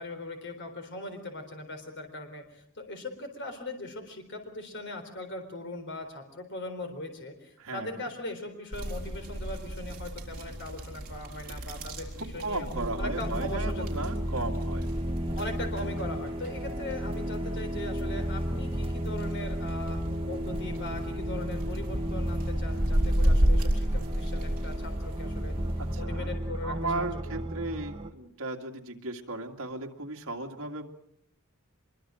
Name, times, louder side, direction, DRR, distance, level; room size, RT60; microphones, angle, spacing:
voice 1, 0.0-12.7 13.0-14.0 15.3-25.6 26.0-27.4, left 2 dB, 55° left, 6 dB, 4.0 m, -40 dB
voice 2, 7.6-8.1 12.2-14.9 25.9-26.3 26.6-30.9, right 2 dB, 60° right, 2 dB, 2.3 m, -36 dB
sound 1, 8.7-26.0, equal, 40° right, 4.3 m, -32 dB
sound 2, 12.7-28.1, equal, 25° right, 1.7 m, -34 dB
24.5 x 22.5 x 6.4 m, 0.70 s
head